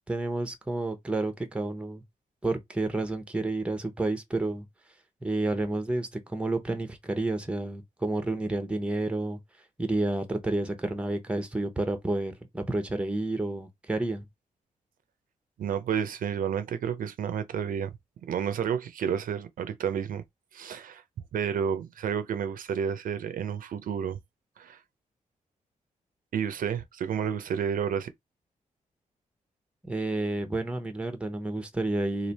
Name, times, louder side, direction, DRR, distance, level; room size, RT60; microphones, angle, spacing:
voice 1, 0.1-2.0 2.4-4.7 5.2-9.4 9.8-14.2 29.8-32.3, right 2 dB, 10° right, 0.7 m, -30 dB
voice 2, 15.6-17.9 18.3-20.2 20.5-21.0 21.3-24.2 24.6-24.8 26.3-28.1, right 8 dB, 75° right, 0.5 m, -30 dB
3.2 x 2.5 x 4.0 m
wide cardioid pair, 150°, 14 cm